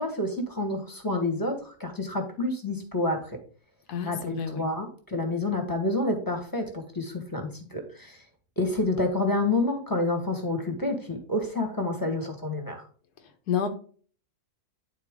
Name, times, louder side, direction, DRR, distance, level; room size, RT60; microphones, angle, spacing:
voice 1, 0.0-3.3 4.0-8.2 8.6-12.8, left 2 dB, 15° left, 4 dB, 1.2 m, -28 dB
voice 2, 3.9-4.6 13.5-13.7, left 7 dB, 85° left, 7 dB, 1.5 m, -29 dB
9.5 x 4.3 x 3.6 m, 0.43 s
omnidirectional pair, 1.6 m